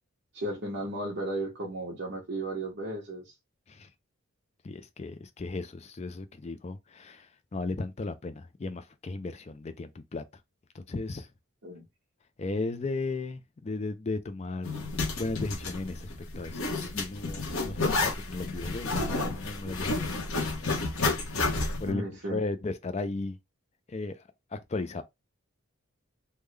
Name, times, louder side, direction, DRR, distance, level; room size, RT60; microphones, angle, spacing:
voice 1, 0.3-3.3 11.6-11.8 21.9-22.4, right 1 dB, 55° right, 1.1 m, -34 dB
voice 2, 4.6-10.2 10.7-11.3 12.4-14.8 15.1-16.6 16.9-20.2 21.8-22.0 22.3-23.4 23.9-24.2 24.5-25.0, left 3 dB, 30° left, 0.3 m, -35 dB
Zipper (clothing), 14.6-21.9, left 3 dB, 80° left, 1.0 m, -31 dB
3.6 x 2.2 x 3.2 m
head